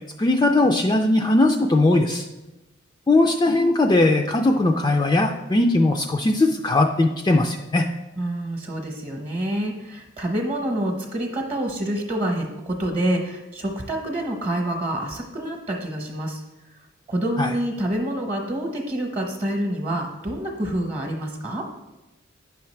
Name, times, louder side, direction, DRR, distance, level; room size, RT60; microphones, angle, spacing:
voice 1, 0.2-2.2 3.1-7.9 17.4-17.5, left 2 dB, 20° left, 2 dB, 0.3 m, -19 dB
voice 2, 8.2-16.4 17.1-21.7, right 1 dB, 35° right, -1 dB, 0.9 m, -27 dB
9.0 x 5.7 x 3.2 m, 1.0 s
head